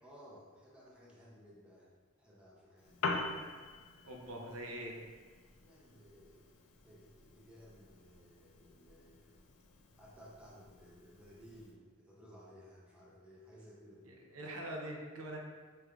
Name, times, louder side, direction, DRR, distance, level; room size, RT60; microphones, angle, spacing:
voice 1, 0.0-1.9 2.2-3.3 5.6-9.4 10.0-14.1, equal, 5° right, -6 dB, 0.6 m, -58 dB
Piano, 2.8-11.8, left 3 dB, 75° left, 0.4 m, -45 dB
voice 2, 4.0-5.0 14.1-15.4, right 1 dB, 80° right, 0 dB, 0.7 m, -43 dB
4.6 x 3.2 x 2.4 m, 1.5 s
head